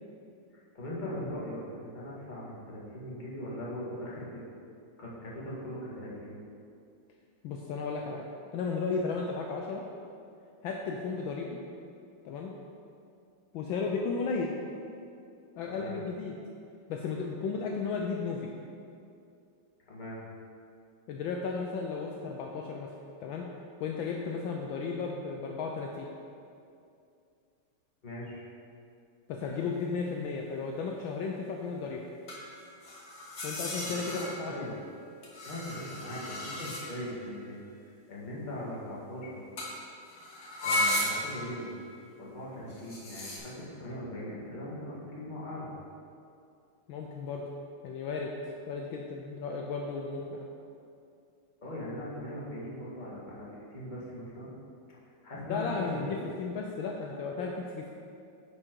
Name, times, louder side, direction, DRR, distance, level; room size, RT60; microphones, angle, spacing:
voice 1, 0.5-4.4 5.0-6.4 15.6-16.0 19.9-20.2 28.0-28.4 34.1-34.7 35.4-37.6 37.8-39.5 40.6-41.7 42.2-45.7 51.6-54.5 55.2-56.2, left 1 dB, 25° left, -6 dB, 1.6 m, -40 dB
voice 2, 7.4-8.3 8.5-9.9 10.6-11.6 12.2-12.5 13.5-14.5 15.6-16.4 16.9-18.5 21.1-22.9 23.2-23.5 23.8-26.1 29.3-32.0 33.4-34.7 46.9-47.4 47.8-48.3 48.7-50.4 55.5-57.9, left 4 dB, 75° left, 1 dB, 1.3 m, -34 dB
sound 1, 29.4-29.6 32.3-34.7 35.2-37.2 39.6-39.8 40.0-41.5 42.7-43.4, left 1 dB, 45° left, 1.7 m, -35 dB
9.9 x 5.0 x 4.5 m, 2.5 s
omnidirectional pair, 2.4 m